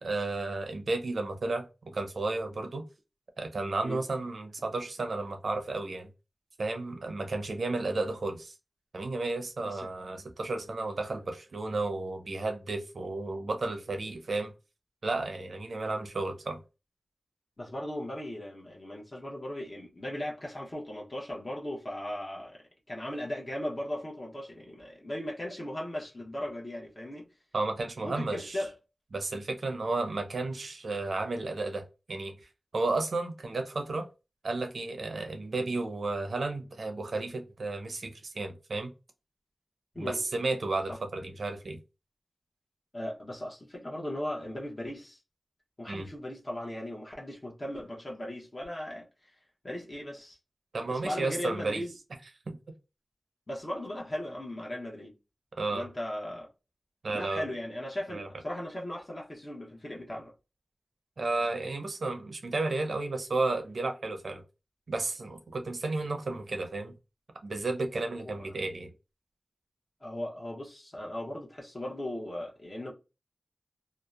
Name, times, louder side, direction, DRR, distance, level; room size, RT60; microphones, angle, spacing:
voice 1, 0.0-1.7 1.9-2.8 3.4-6.1 6.6-8.5 8.9-14.5 15.0-16.6 27.5-28.6 29.1-32.3 32.7-34.1 34.4-38.9 40.0-41.8 45.9-46.1 50.7-51.8 52.5-52.6 55.6-55.9 57.0-57.4 58.1-58.3 61.2-64.4 64.9-66.9 67.4-68.9, right 3 dB, 80° right, 0.6 m, -33 dB
voice 2, 17.6-22.6 22.9-27.3 28.0-28.7 39.9-40.2 40.9-41.0 42.9-45.2 45.8-49.3 49.6-50.4 50.9-51.9 53.5-55.1 55.7-56.5 57.1-60.3 68.2-68.5 70.0-72.9, left 1 dB, 35° left, 0.7 m, -37 dB
2.8 x 2.0 x 2.3 m
wide cardioid pair, 65°, 0 cm